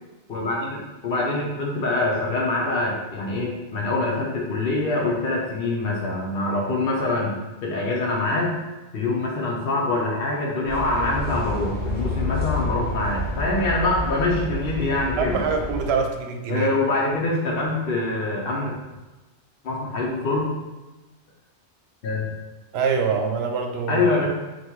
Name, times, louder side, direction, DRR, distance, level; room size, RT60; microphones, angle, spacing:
voice 1, 0.3-7.4 7.6-8.5 8.9-15.4 16.5-18.7 19.6-20.5 22.0-22.3 23.9-24.3, left 2 dB, 60° left, -4 dB, 0.8 m, -24 dB
sound 1, 10.7-15.9, left 1 dB, 10° left, 1.0 m, -29 dB
voice 2, 15.2-16.7 22.7-24.1, right 5 dB, 70° right, 4 dB, 0.8 m, -24 dB
4.0 x 2.3 x 4.4 m, 1.1 s
omnidirectional pair, 1.2 m